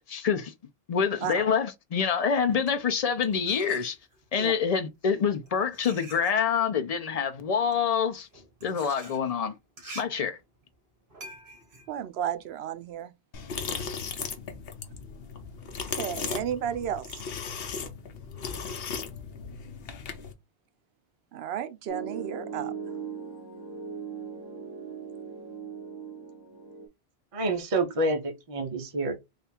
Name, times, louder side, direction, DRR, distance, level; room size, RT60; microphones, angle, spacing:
voice 1, 0.1-0.5 0.9-4.0 4.3-8.3 8.6-9.5 9.9-10.4, left 6 dB, 50° left, 0.5 m, -26 dB
sound 1, 2.4-4.4 5.1-13.0, right 2 dB, 55° right, 1.5 m, -48 dB
voice 2, 11.9-13.1 16.0-17.0 21.3-22.7, right 9 dB, 80° right, 0.8 m, -33 dB
sound 2, 13.3-20.3, left 5 dB, 70° left, 0.9 m, -36 dB
Piano, 21.9-26.9, right 6 dB, 25° left, 1.0 m, -39 dB
voice 3, 27.3-29.2, right 2 dB, 35° right, 0.8 m, -28 dB
3.4 x 2.4 x 4.3 m
omnidirectional pair, 1.1 m